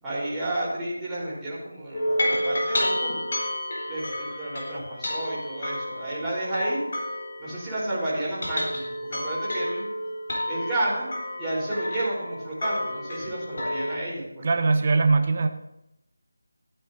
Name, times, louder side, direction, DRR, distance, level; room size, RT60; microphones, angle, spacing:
voice 1, 0.0-3.2 3.9-6.8 7.4-9.8 10.5-11.1 11.4-14.5, right 1 dB, 10° right, -10 dB, 3.7 m, -31 dB
sound 1, 1.9-7.9 8.2-14.0, left 1 dB, 55° left, 3.7 m, -30 dB
voice 2, 14.4-15.5, right 3 dB, 35° right, 8 dB, 0.9 m, -21 dB
14.5 x 9.2 x 2.7 m, 0.84 s
figure-of-eight pair, 165°, 0 cm